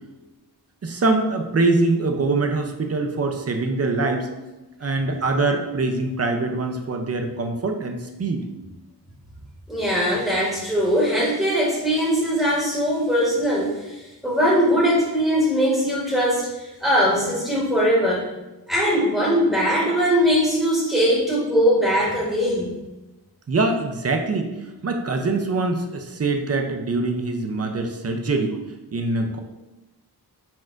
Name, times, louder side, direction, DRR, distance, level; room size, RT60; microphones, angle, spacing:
voice 1, 0.8-4.3 4.8-8.4 23.5-24.5 24.8-28.6 28.9-29.4, right 3 dB, 35° right, 4 dB, 0.6 m, -23 dB
voice 2, 9.7-18.3 18.7-22.7, equal, ahead, -6 dB, 1.2 m, -21 dB
4.3 x 2.5 x 4.4 m, 1.0 s
wide cardioid pair, 105°, 41 cm